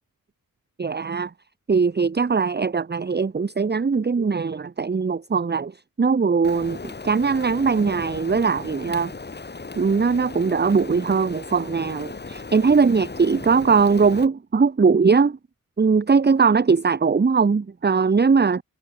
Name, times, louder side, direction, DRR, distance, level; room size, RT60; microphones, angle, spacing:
voice 1, 0.8-1.3 1.7-5.7 6.0-9.1 9.7-15.4 15.8-18.6, right 5 dB, 30° right, 0.7 m, -20 dB
Rain, 6.4-14.3, left 4 dB, 30° left, 1.0 m, -37 dB
cardioid pair, 55°, 35 cm